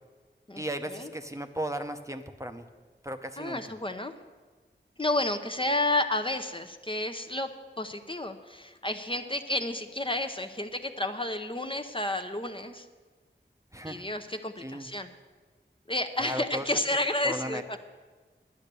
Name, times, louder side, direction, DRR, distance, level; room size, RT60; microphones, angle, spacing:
voice 1, 0.6-2.7 3.0-3.7 13.7-14.0 14.6-14.9 16.2-16.7 17.2-17.8, equal, 15° right, 6 dB, 0.7 m, -36 dB
voice 2, 3.4-4.1 5.0-7.5 7.8-12.9 13.8-15.1 15.9-17.8, left 1 dB, 25° left, 6 dB, 0.7 m, -31 dB
10.5 x 9.7 x 6.8 m, 1.4 s
wide cardioid pair, 50°, 20 cm